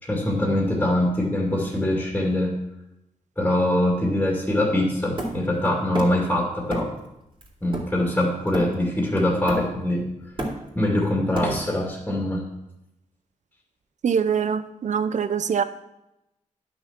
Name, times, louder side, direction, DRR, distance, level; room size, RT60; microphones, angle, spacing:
voice 1, 0.0-2.6 3.4-6.9 7.6-10.1 10.8-12.5, left 1 dB, 10° left, -2 dB, 2.3 m, -23 dB
Hammer, 5.2-6.3 6.7-7.0 7.4-9.0 9.5-9.9 10.2-11.9, right 1 dB, 40° right, 2.7 m, -32 dB
voice 2, 14.0-15.6, right 7 dB, 65° right, 12 dB, 0.7 m, -23 dB
11.0 x 6.2 x 6.0 m, 0.88 s
wide cardioid pair, 120°, 13 cm